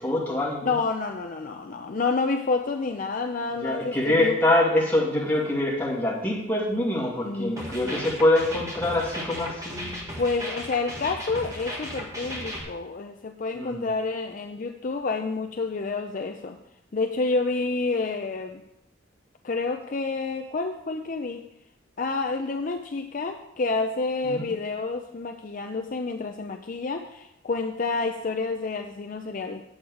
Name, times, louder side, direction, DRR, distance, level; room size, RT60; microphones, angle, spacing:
voice 1, 0.0-0.8 3.5-10.2 13.6-13.9 24.2-24.5, left 1 dB, 10° left, -5 dB, 2.2 m, -25 dB
voice 2, 0.6-4.4 7.2-8.1 10.2-16.6 16.9-18.6 19.4-21.5 22.0-29.6, left 3 dB, 40° left, 4 dB, 0.5 m, -29 dB
sound 1, 7.6-12.6, equal, 15° right, 1.6 m, -36 dB
8.7 x 8.0 x 4.7 m, 0.85 s
head